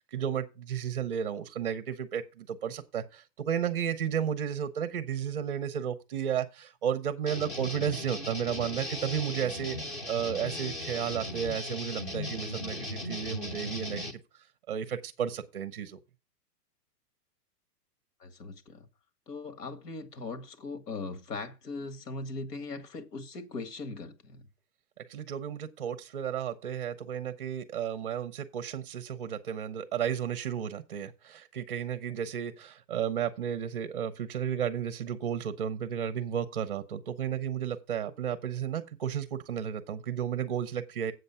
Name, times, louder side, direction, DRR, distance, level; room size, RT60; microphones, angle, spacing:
voice 1, 0.1-14.1 14.7-16.0 25.0-41.1, right 9 dB, 35° right, 0.6 m, -33 dB
sound 1, 7.3-14.1, left 1 dB, 15° left, 0.8 m, -37 dB
voice 2, 18.2-18.9 19.3-24.4, left 3 dB, 75° left, 2.0 m, -39 dB
7.9 x 6.5 x 5.5 m
hypercardioid pair, 175°, 48 cm